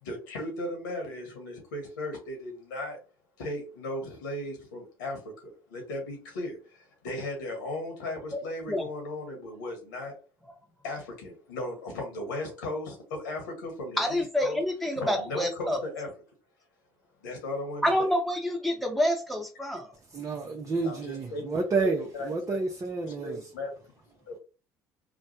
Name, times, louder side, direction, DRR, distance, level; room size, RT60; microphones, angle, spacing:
voice 1, 0.0-3.0 3.4-10.2 10.8-14.6 14.9-16.1 17.2-17.9 20.8-21.5 21.8-21.9 22.1-22.6 23.1-23.7 24.1-24.4, left 1 dB, 90° left, 1.3 m, -36 dB
voice 2, 14.0-15.8 17.8-19.9, equal, ahead, 1.2 m, -27 dB
voice 3, 20.1-23.4, right 3 dB, 30° right, 0.8 m, -30 dB
3.2 x 2.2 x 2.8 m
hypercardioid pair, 65°, 10 cm